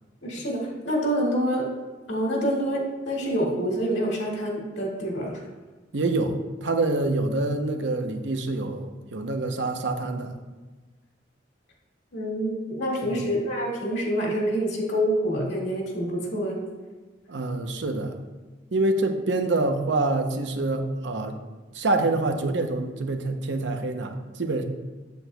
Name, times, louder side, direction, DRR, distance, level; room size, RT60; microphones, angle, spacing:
voice 1, 0.2-1.7 2.1-5.4 12.1-16.7, equal, 75° left, -3 dB, 2.0 m, -27 dB
voice 2, 5.9-6.3 6.6-10.3 13.0-13.2 17.3-18.2 18.7-21.4 21.7-24.6, right 2 dB, 80° right, 5 dB, 0.7 m, -26 dB
8.3 x 7.9 x 2.3 m, 1.3 s
head